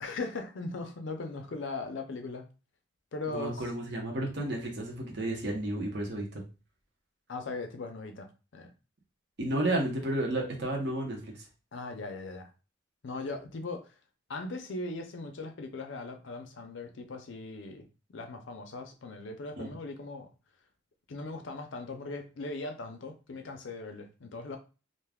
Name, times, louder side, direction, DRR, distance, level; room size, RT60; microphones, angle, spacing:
voice 1, 0.0-2.5 3.1-3.6 7.3-8.7 11.7-12.5 13.0-13.9 14.3-20.3 21.1-24.6, left 3 dB, 65° left, 0.5 m, -39 dB
voice 2, 3.3-6.4 9.4-11.3 19.6-19.7, right 1 dB, 55° right, 0.9 m, -32 dB
2.5 x 2.3 x 3.4 m
head